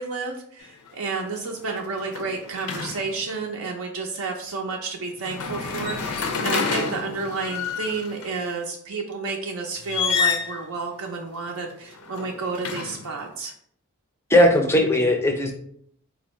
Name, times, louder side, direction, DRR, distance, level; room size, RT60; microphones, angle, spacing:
voice 1, 0.0-13.5, right 4 dB, 75° right, 1 dB, 0.5 m, -31 dB
sound 1, 0.6-0.9 1.2-3.4 5.2-8.3 9.8-10.6 11.8-13.2, left 5 dB, 85° left, 0.6 m, -29 dB
voice 2, 14.3-15.5, left 1 dB, 10° left, 3 dB, 0.4 m, -18 dB
4.2 x 2.4 x 3.0 m, 0.66 s
head